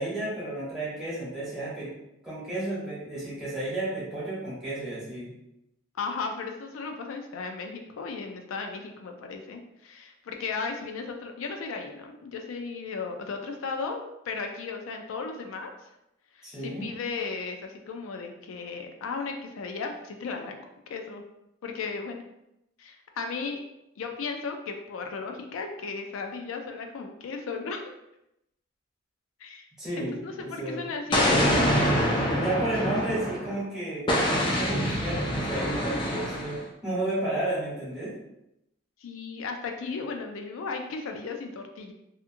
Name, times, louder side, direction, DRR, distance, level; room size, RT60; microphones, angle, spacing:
voice 1, 0.0-1.9 2.2-5.3 16.4-16.9 29.8-30.9 32.2-38.2, right 1 dB, 5° right, -9 dB, 1.0 m, -32 dB
voice 2, 6.0-15.7 16.4-20.6 20.9-21.2 21.6-22.2 22.8-23.6 24.0-27.8 29.4-29.6 30.2-32.1 39.0-41.9, left 4 dB, 90° left, 3 dB, 0.4 m, -35 dB
Explosion, 31.1-33.6 34.1-36.6, equal, 25° left, 0.4 m, -25 dB
2.7 x 2.4 x 2.5 m, 0.85 s
head